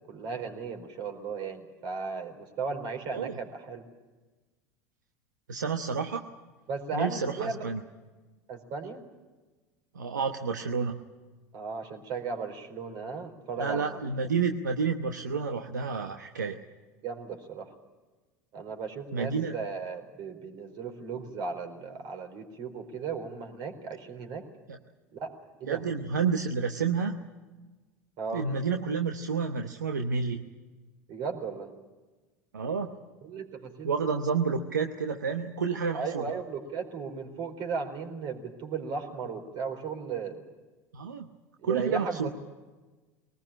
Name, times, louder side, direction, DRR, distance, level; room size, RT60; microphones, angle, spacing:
voice 1, 0.0-3.8 6.7-7.7 8.5-9.0 11.5-14.3 17.0-17.7 18.5-24.5 25.1-25.3 25.6-25.8 28.2-28.5 31.1-31.7 33.2-33.9 35.9-40.4 41.6-42.3, right 5 dB, 55° right, 4 dB, 4.3 m, -36 dB
voice 2, 5.5-6.2 6.9-7.8 9.9-11.0 13.6-16.6 19.1-19.5 24.7-24.8 25.7-27.1 28.3-30.4 32.5-32.9 33.8-36.2 40.9-41.3 41.6-42.3, right 5 dB, 85° right, 5 dB, 1.0 m, -30 dB
22.0 x 19.5 x 8.8 m, 1.2 s
hypercardioid pair, 80°, 9 cm